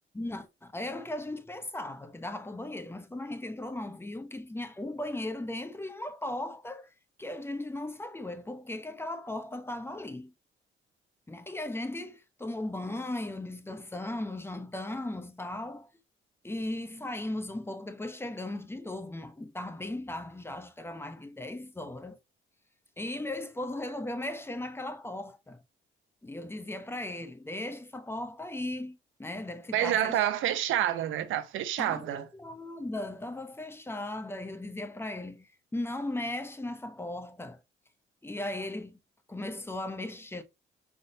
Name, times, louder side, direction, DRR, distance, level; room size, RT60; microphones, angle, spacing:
voice 1, 0.1-6.9 7.2-10.3 11.3-15.9 16.4-22.2 23.0-25.6 26.2-30.3 31.8-37.6 38.2-39.0 39.3-40.4, left 1 dB, 10° left, 0.8 m, -37 dB
voice 2, 29.7-32.2, right 11 dB, 85° right, 0.7 m, -28 dB
5.2 x 3.6 x 2.7 m
cardioid pair, 90°, 20 cm